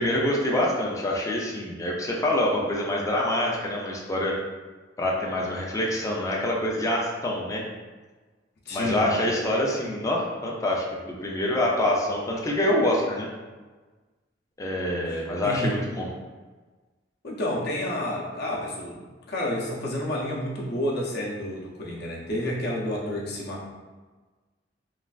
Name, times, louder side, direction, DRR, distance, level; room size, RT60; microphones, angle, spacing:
voice 1, 0.0-4.4 5.0-7.6 8.7-13.3 14.6-16.1, left 1 dB, 20° left, -2 dB, 0.4 m, -26 dB
voice 2, 8.7-9.1 15.1-15.7 17.2-19.0 19.3-23.7, left 1 dB, 60° left, -3 dB, 0.6 m, -30 dB
3.1 x 2.3 x 2.4 m, 1.3 s
head